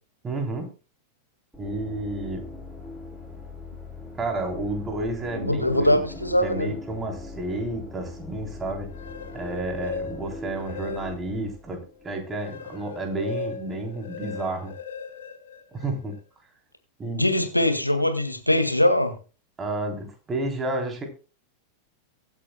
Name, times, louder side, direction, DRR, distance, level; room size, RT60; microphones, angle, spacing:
voice 1, 0.2-0.7 1.6-2.4 4.2-6.0 6.4-8.9 9.3-14.7 15.7-16.2 17.0-17.2 19.6-21.1, right 2 dB, 20° right, 2 dB, 3.5 m, -31 dB
sound 1, 1.5-12.3, left 2 dB, ahead, 5.8 m, -40 dB
voice 2, 5.3-6.7 17.1-19.1, left 1 dB, 90° left, 7 dB, 1.9 m, -22 dB
sound 2, 8.8-11.4 11.9-16.2, left 5 dB, 60° left, 1.7 m, -38 dB
23.0 x 8.4 x 2.2 m, 0.34 s
figure-of-eight pair, 90°, 0 cm